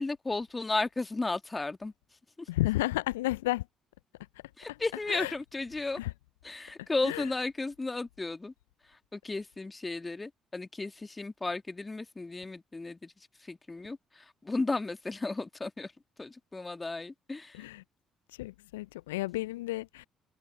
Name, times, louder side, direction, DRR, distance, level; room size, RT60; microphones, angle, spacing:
voice 1, 0.0-1.9 2.4-2.5 4.6-6.0 6.4-8.5 8.9-13.1 13.4-15.9 16.2-17.6, left 3 dB, 20° left, 1.9 m, -34 dB
voice 2, 2.5-3.6 5.1-5.3 6.0-6.1 7.0-7.2 17.6-17.8 18.4-20.1, left 18 dB, 75° left, 0.8 m, -32 dB
figure-of-eight pair, 45°, 0 cm